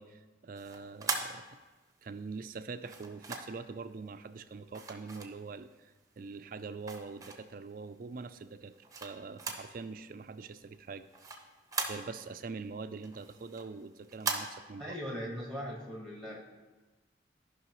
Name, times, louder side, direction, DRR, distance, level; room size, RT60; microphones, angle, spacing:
voice 1, 0.0-1.4 2.0-8.7 9.0-11.0 11.9-15.0, right 4 dB, 50° right, 11 dB, 0.4 m, -44 dB
sound 1, 0.5-2.0 2.8-3.7 4.7-5.8 6.3-7.6 8.2-9.8 10.0-10.1 10.5-12.4 12.8-14.4, right 4 dB, 20° right, 0.7 m, -39 dB
voice 2, 14.8-16.4, equal, 5° left, -2 dB, 1.3 m, -39 dB
14.0 x 5.6 x 3.0 m, 1.2 s
head